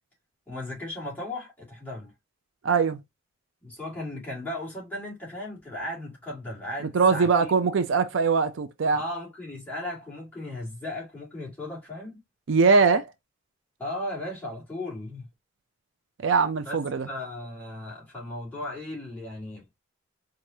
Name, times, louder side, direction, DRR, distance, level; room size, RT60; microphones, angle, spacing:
voice 1, 0.5-2.1 3.6-7.5 8.9-12.2 13.8-15.3 16.6-19.6, left 1 dB, 10° left, 2.0 m, -36 dB
voice 2, 2.6-3.0 6.9-9.0 12.5-13.1 16.2-17.1, right 5 dB, 70° right, 0.4 m, -21 dB
4.6 x 2.5 x 2.7 m
head